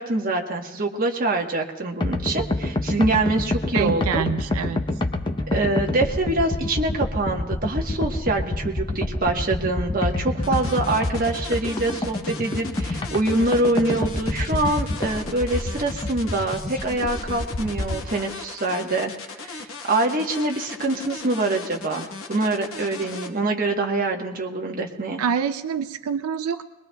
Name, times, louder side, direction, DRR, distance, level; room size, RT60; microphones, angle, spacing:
voice 1, 0.0-4.2 5.5-19.1 19.4-25.2, right 2 dB, 40° right, 1 dB, 1.1 m, -25 dB
sound 1, 2.0-18.0, left 2 dB, 20° left, 0.7 m, -28 dB
voice 2, 3.7-4.8 25.2-26.6, right 7 dB, 90° right, 11 dB, 0.4 m, -26 dB
sound 2, 10.4-23.3, left 4 dB, 75° left, 1.1 m, -37 dB
23.0 x 21.0 x 2.3 m, 1.2 s
head